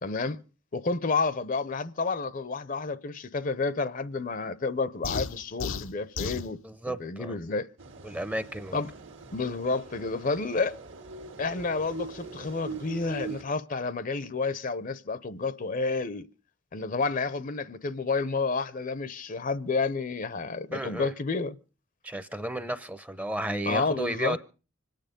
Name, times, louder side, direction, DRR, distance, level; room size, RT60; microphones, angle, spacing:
voice 1, 0.0-0.4 0.7-6.6 6.9-7.7 8.7-8.9 9.3-10.8 11.4-16.3 16.7-21.6 23.7-24.4, left 4 dB, 40° left, 0.7 m, -30 dB
sound 1, 5.0-6.5, left 5 dB, 80° left, 0.8 m, -33 dB
voice 2, 6.6-7.4 8.0-8.8 20.7-21.1 22.0-24.4, right 1 dB, 10° right, 0.7 m, -33 dB
sound 2, 7.8-13.4, right 3 dB, 70° right, 1.8 m, -42 dB
25.5 x 9.2 x 5.1 m
head